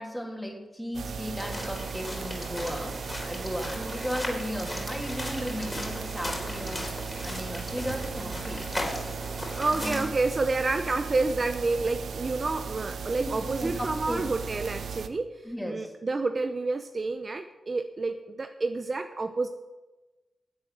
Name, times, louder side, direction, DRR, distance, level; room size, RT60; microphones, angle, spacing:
voice 1, 0.0-8.7 9.7-10.0 13.2-14.2 15.4-15.9, equal, ahead, 1 dB, 3.1 m, -36 dB
sound 1, 0.9-15.1, right 6 dB, 70° right, 0.7 m, -37 dB
sound 2, 1.4-10.1, left 1 dB, 20° left, 4.1 m, -37 dB
voice 2, 9.6-19.5, right 3 dB, 45° right, 7 dB, 0.8 m, -29 dB
11.5 x 7.8 x 7.8 m, 1.1 s
cardioid pair, 60°, 0 cm